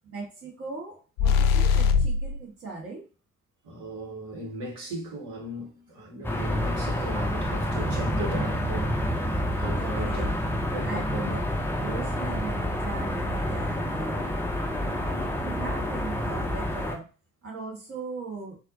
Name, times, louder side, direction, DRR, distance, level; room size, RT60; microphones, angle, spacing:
voice 1, 0.0-3.1 9.8-10.4 10.8-11.4 11.8-17.1 17.4-18.6, right 4 dB, 35° right, 1.4 m, -39 dB
sound 1, 1.2-2.4, left 6 dB, 55° left, 0.5 m, -21 dB
voice 2, 3.6-9.0 9.3-10.4 10.7-11.4, right 1 dB, 50° right, 1.7 m, -37 dB
sound 2, 6.2-17.0, left 1 dB, 5° left, 0.6 m, -28 dB
4.2 x 2.6 x 2.7 m
figure-of-eight pair, 50°, 40 cm